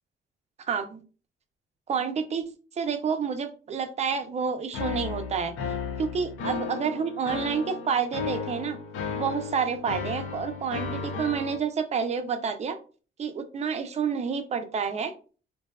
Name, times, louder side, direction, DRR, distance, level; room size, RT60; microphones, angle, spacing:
voice 1, 0.7-1.0 1.9-2.4 2.8-5.5 6.0-8.8 9.1-12.8 13.2-15.1, right 6 dB, 35° right, 7 dB, 0.4 m, -29 dB
sound 1, 4.7-11.6, left 5 dB, 85° left, 0.5 m, -34 dB
2.6 x 2.2 x 2.2 m, 0.37 s
cardioid pair, 90°, 20 cm